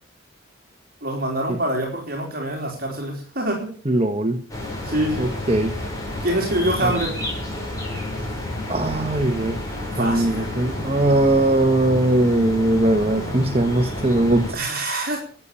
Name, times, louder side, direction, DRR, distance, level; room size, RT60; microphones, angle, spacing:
voice 1, 1.0-3.7 4.8-5.3 6.2-7.1 10.0-10.5 14.5-15.2, right 1 dB, 45° right, 1 dB, 3.8 m, -25 dB
voice 2, 3.8-4.4 5.2-5.7 6.8-6.9 8.7-9.6 10.0-14.4, right 1 dB, 30° right, 7 dB, 1.4 m, -20 dB
sound 1, 4.5-14.5, left 1 dB, 15° left, 6.1 m, -30 dB
13.0 x 8.6 x 9.8 m, 0.43 s
head